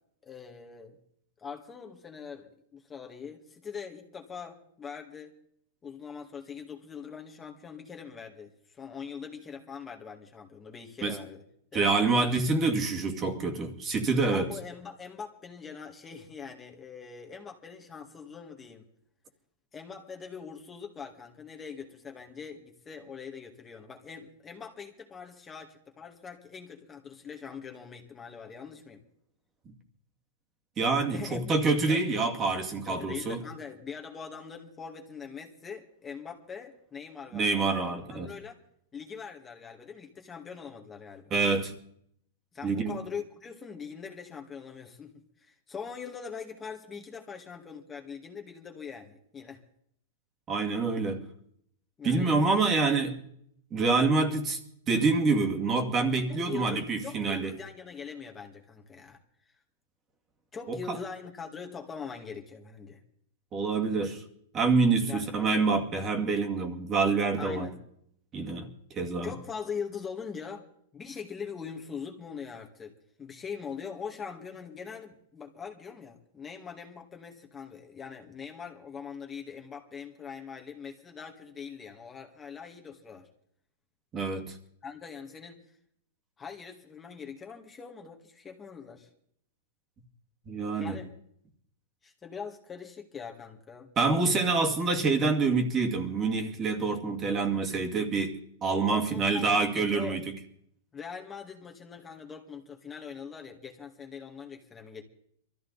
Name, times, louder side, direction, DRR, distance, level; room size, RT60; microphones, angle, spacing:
voice 1, 0.2-1.0 1.4-5.3 5.8-11.4 11.7-11.9 14.3-18.8 19.7-29.0 31.1-31.5 31.9-32.1 32.9-38.6 38.9-41.3 42.5-49.6 52.0-52.6 56.3-59.2 60.5-63.0 65.1-65.3 67.4-67.8 69.2-70.7 70.9-72.9 73.2-83.3 84.8-85.6 86.4-89.1 90.8-91.1 92.0-93.9 98.9-100.2 100.9-105.0, left 6 dB, 15° left, 1.9 m, -42 dB
voice 2, 11.7-14.5 30.8-33.4 37.3-38.3 41.3-41.7 42.6-43.0 50.5-51.2 52.0-53.2 53.7-54.6 54.9-57.5 60.7-61.0 63.5-64.2 64.5-67.7 68.3-69.3 84.1-84.6 90.5-91.0 94.0-100.2, right 4 dB, 25° right, 2.3 m, -27 dB
22.5 x 14.0 x 4.1 m
hypercardioid pair, 140°, 0 cm